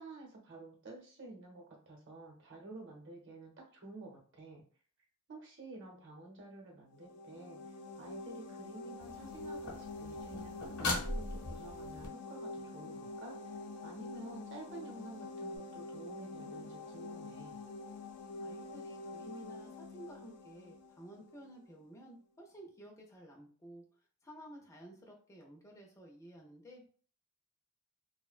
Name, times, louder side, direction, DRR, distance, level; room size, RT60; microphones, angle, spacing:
voice 1, 0.0-4.6 5.3-13.4 13.8-17.6, right 2 dB, 55° right, 0 dB, 0.8 m, -51 dB
sound 1, 6.9-21.6, left 3 dB, 90° left, 0.4 m, -46 dB
sound 2, 9.0-12.1 15.6-15.7, left 2 dB, 65° left, 0.8 m, -40 dB
voice 2, 18.3-23.8 24.2-26.9, equal, 15° left, -1 dB, 0.4 m, -53 dB
2.5 x 2.1 x 2.4 m, 0.43 s
head